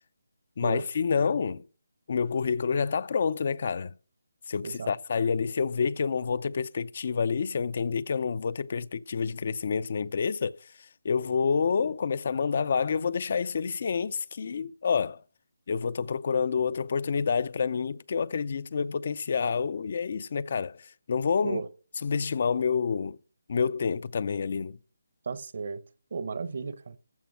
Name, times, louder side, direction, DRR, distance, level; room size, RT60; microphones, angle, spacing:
voice 1, 0.6-1.6 2.1-3.9 4.5-10.7 11.0-15.2 15.7-21.6 22.0-23.2 23.5-24.8, left 5 dB, 45° left, 0.5 m, -28 dB
voice 2, 25.2-25.8 26.1-27.0, right 5 dB, 50° right, 1.0 m, -34 dB
14.5 x 5.1 x 7.4 m
figure-of-eight pair, 165°, 0 cm